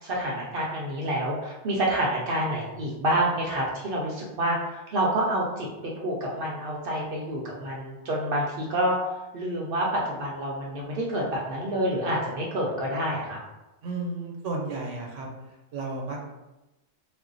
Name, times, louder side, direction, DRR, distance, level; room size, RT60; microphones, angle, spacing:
voice 1, 0.0-5.7 6.0-9.0 9.3-13.4, right 1 dB, 60° right, -3 dB, 0.6 m, -28 dB
voice 2, 13.8-15.3 15.7-16.2, right 3 dB, 85° right, 0 dB, 1.0 m, -32 dB
2.5 x 2.0 x 3.8 m, 1.0 s
omnidirectional pair, 1.2 m